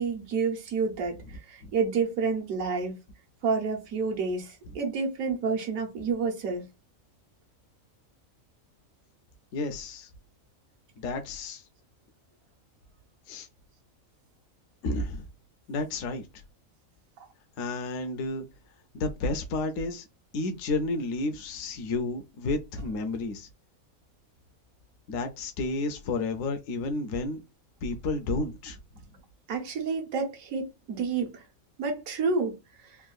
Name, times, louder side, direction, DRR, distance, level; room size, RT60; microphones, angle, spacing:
voice 1, 0.0-2.9 3.4-6.6 17.2-17.3 29.5-31.4 31.8-33.0, right 4 dB, 70° right, 1.3 m, -29 dB
voice 2, 9.5-10.1 11.0-11.6 13.3-13.5 14.8-15.3 15.7-16.3 17.6-18.5 18.9-20.1 20.3-23.5 25.1-27.4 27.8-28.8, left 2 dB, 70° left, 1.0 m, -31 dB
3.5 x 2.2 x 2.4 m
omnidirectional pair, 1.5 m